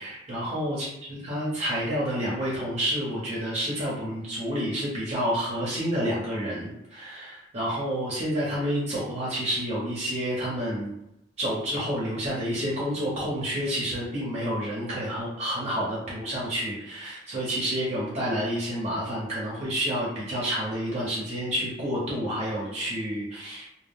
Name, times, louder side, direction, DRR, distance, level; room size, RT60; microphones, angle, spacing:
voice 1, 0.0-10.9 11.4-23.7, equal, 35° right, -7 dB, 0.7 m, -29 dB
2.2 x 2.0 x 3.4 m, 0.85 s
head